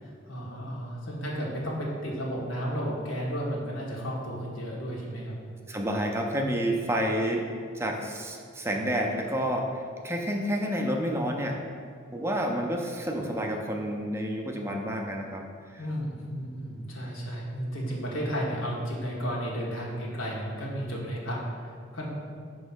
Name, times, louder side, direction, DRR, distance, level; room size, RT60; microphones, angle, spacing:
voice 1, 0.0-5.3 15.8-22.1, equal, 90° left, -4 dB, 1.4 m, -33 dB
voice 2, 5.7-7.5 7.7-11.6 12.1-15.4 15.7-15.8, equal, 15° right, 1 dB, 0.5 m, -29 dB
5.9 x 3.1 x 5.6 m, 2.1 s
head